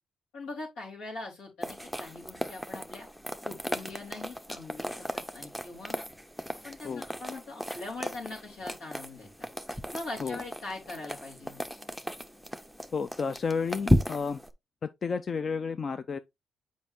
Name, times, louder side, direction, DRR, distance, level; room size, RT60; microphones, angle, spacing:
voice 1, 0.3-3.1 3.5-6.0 6.6-9.5 9.9-11.6, left 2 dB, 90° left, 3.7 m, -42 dB
sound 1, 1.6-14.5, equal, ahead, 0.6 m, -35 dB
voice 2, 12.9-14.4 14.8-16.2, left 5 dB, 45° left, 0.4 m, -31 dB
7.4 x 5.1 x 2.6 m
cardioid pair, 90°, 0 cm